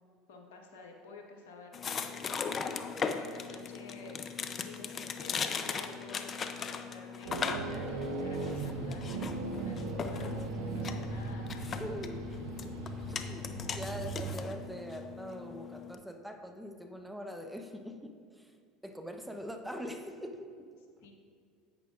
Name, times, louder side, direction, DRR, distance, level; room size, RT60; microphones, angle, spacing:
voice 1, 0.3-4.2 4.6-10.5 10.7-11.9 21.0-21.1, left 3 dB, 75° left, 1 dB, 1.3 m, -51 dB
sound 1, 1.7-15.9, left 6 dB, 40° left, 0.6 m, -39 dB
sound 2, 7.2-14.3, right 3 dB, 75° right, 1.0 m, -38 dB
voice 2, 11.6-12.2 12.6-12.8 13.1-18.6 18.8-20.7 21.0-21.1, equal, 5° right, 5 dB, 0.9 m, -43 dB
10.5 x 8.3 x 2.5 m, 2.1 s
hypercardioid pair, 75°, 0 cm